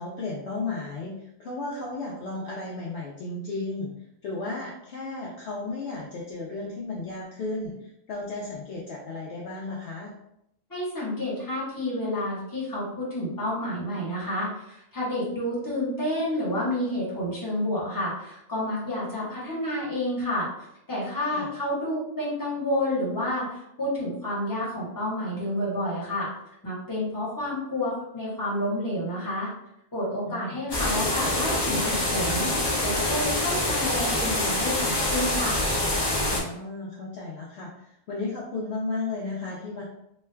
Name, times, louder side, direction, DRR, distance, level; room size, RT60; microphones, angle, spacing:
voice 1, 0.0-3.9 4.2-10.1 21.3-21.5 30.2-30.6 36.3-39.8, left 3 dB, 65° left, -4 dB, 0.8 m, -34 dB
voice 2, 10.7-20.5 20.9-26.3 26.6-29.5 29.9-32.5 32.8-35.6, left 1 dB, 15° left, -6 dB, 1.1 m, -29 dB
sound 1, 30.7-36.4, left 1 dB, 35° left, 0.4 m, -26 dB
3.1 x 2.3 x 3.3 m, 0.80 s
omnidirectional pair, 1.3 m